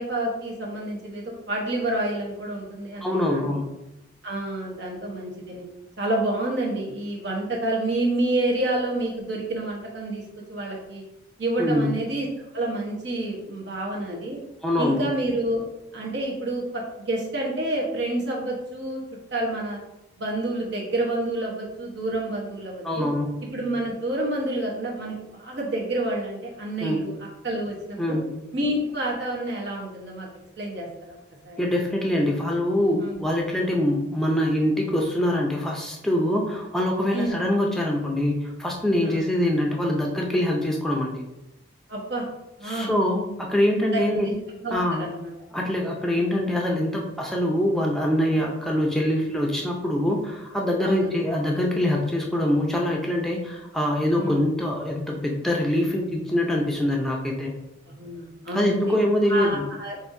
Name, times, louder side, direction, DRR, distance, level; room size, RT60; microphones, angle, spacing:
voice 1, 0.0-3.6 4.2-5.6 6.0-10.2 10.5-11.0 11.4-12.3 12.5-14.4 14.8-15.6 15.9-16.8 17.1-19.0 19.3-19.8 20.2-23.1 23.5-27.1 27.4-28.2 28.5-30.3 30.6-31.2 31.4-31.6 33.0-33.2 37.1-37.3 39.0-39.2 41.9-42.3 42.6-42.9 43.9-44.3 44.6-45.3 50.8-51.1 54.1-54.4 57.9-59.0 59.3-60.0, right 1 dB, 65° right, -2 dB, 1.0 m, -28 dB
voice 2, 3.0-3.7 11.6-12.0 14.6-15.0 22.8-23.4 26.8-27.1 28.0-28.3 31.6-41.2 42.7-44.3 44.7-45.1 45.5-57.5 58.5-59.7, left 1 dB, ahead, -1 dB, 0.5 m, -24 dB
5.5 x 2.6 x 2.6 m, 0.90 s
head